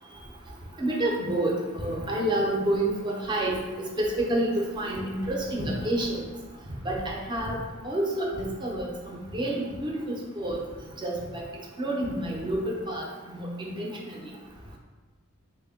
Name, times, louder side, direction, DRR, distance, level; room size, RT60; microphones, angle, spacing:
voice 1, 0.8-3.5 4.0-4.5 4.8-6.2 6.8-7.6 7.8-10.6 11.0-11.4 11.8-14.1, right 1 dB, 20° right, -2 dB, 0.4 m, -29 dB
3.5 x 2.1 x 3.4 m, 1.3 s
head